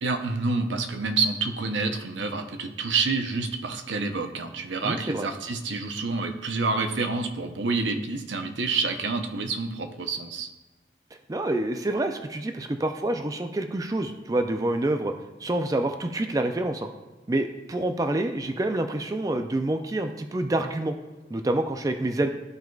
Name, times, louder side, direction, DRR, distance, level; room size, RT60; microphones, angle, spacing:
voice 1, 0.0-10.5, right 4 dB, 85° right, 6 dB, 0.7 m, -28 dB
voice 2, 4.8-5.3 11.3-15.1 15.4-16.9 17.3-21.0 21.3-22.3, right 1 dB, 20° right, 6 dB, 0.4 m, -27 dB
13.5 x 4.6 x 2.3 m, 1.2 s
head